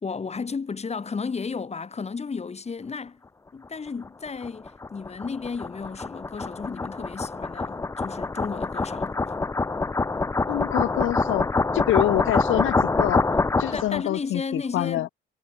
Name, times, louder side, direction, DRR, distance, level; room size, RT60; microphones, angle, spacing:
voice 1, 0.0-3.2 3.5-9.3 13.7-15.1, left 5 dB, 30° left, 2.5 m, -33 dB
sound 1, 4.0-14.0, left 3 dB, 15° left, 0.5 m, -26 dB
voice 2, 10.5-11.5 11.7-13.3 13.6-15.1, left 14 dB, 80° left, 1.6 m, -26 dB
cardioid pair, 90°, 20 cm